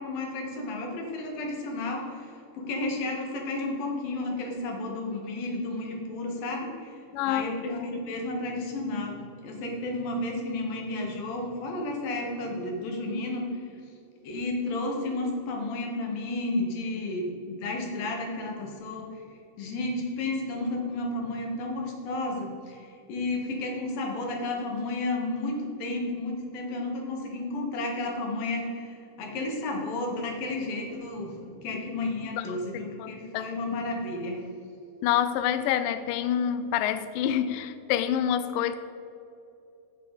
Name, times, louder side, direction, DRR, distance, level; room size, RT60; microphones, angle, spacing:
voice 1, 0.0-6.9 7.2-13.6 14.2-19.2 19.6-34.4, left 2 dB, 70° left, 0 dB, 3.3 m, -32 dB
voice 2, 7.1-7.9 32.4-33.5 35.0-38.8, left 10 dB, 85° left, 11 dB, 1.9 m, -28 dB
16.0 x 7.1 x 4.1 m, 2.7 s
omnidirectional pair, 4.5 m